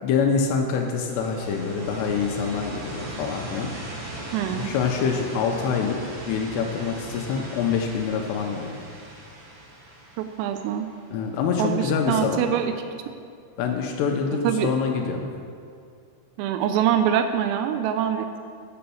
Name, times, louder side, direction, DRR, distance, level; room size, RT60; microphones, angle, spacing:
voice 1, 0.0-4.0 4.5-6.0 6.3-8.7 11.1-12.5 13.6-15.3, left 6 dB, 90° left, 2 dB, 2.4 m, -25 dB
sound 1, 1.0-11.8, right 2 dB, 70° right, 1.5 m, -39 dB
voice 2, 4.3-4.7 10.2-10.9 11.6-12.7 14.4-14.7 16.4-18.3, right 9 dB, 85° right, 7 dB, 3.2 m, -24 dB
10.5 x 6.8 x 7.0 m, 2.3 s
omnidirectional pair, 5.8 m